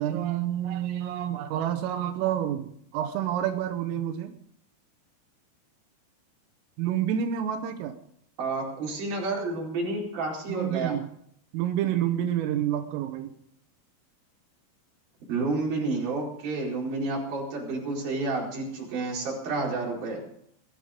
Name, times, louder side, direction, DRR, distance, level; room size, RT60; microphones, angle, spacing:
voice 1, 0.0-4.3 6.8-8.0 10.5-11.1 11.5-13.3, right 10 dB, 90° right, 6 dB, 3.7 m, -28 dB
voice 2, 8.4-10.9 15.3-20.2, right 3 dB, 50° right, -3 dB, 6.2 m, -30 dB
21.5 x 12.5 x 5.2 m, 0.69 s
omnidirectional pair, 5.7 m